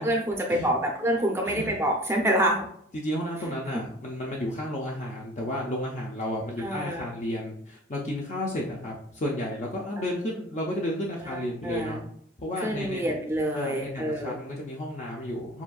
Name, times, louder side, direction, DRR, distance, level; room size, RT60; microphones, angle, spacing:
voice 1, 0.0-2.7 6.6-7.0 10.0-10.1 11.2-12.0 12.6-14.4, right 1 dB, 15° right, 1 dB, 0.6 m, -27 dB
voice 2, 2.9-12.0 12.4-13.0 13.5-15.6, left 1 dB, 40° left, -2 dB, 0.6 m, -32 dB
7.1 x 2.6 x 2.3 m, 0.65 s
head